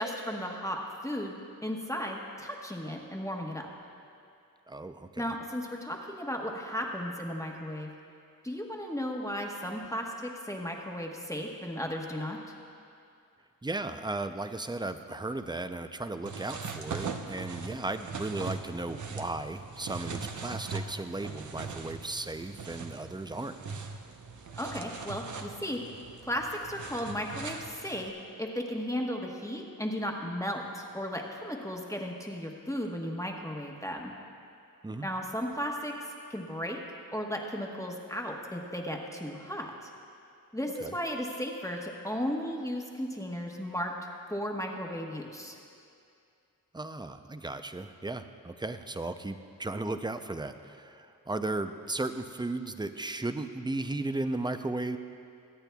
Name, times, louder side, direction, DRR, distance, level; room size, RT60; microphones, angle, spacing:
voice 1, 0.0-1.4 1.6-3.6 5.2-7.9 8.4-12.4 24.6-25.8 26.2-34.1 35.0-35.9 36.3-36.8 37.1-39.9 40.5-43.9 44.3-45.6, equal, 10° left, 0 dB, 1.1 m, -35 dB
voice 2, 4.7-5.2 13.6-23.6 34.8-35.1 40.8-40.9 46.7-55.0, right 2 dB, 15° right, 9 dB, 0.5 m, -35 dB
sound 1, 16.3-28.1, right 5 dB, 55° right, 0.8 m, -40 dB
22.5 x 8.8 x 2.3 m, 2.5 s
cardioid pair, 55°, 35 cm